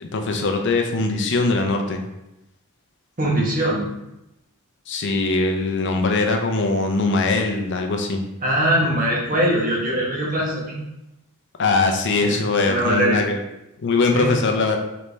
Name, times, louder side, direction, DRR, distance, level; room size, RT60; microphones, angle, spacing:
voice 1, 0.0-2.0 4.9-8.2 11.6-13.4 13.8-14.8, left 3 dB, 55° left, 4 dB, 0.5 m, -21 dB
voice 2, 3.2-3.9 8.4-10.8 12.2-12.3 12.6-13.2 14.1-14.3, right 1 dB, 40° right, -3 dB, 1.1 m, -21 dB
3.4 x 3.2 x 3.9 m, 0.89 s
head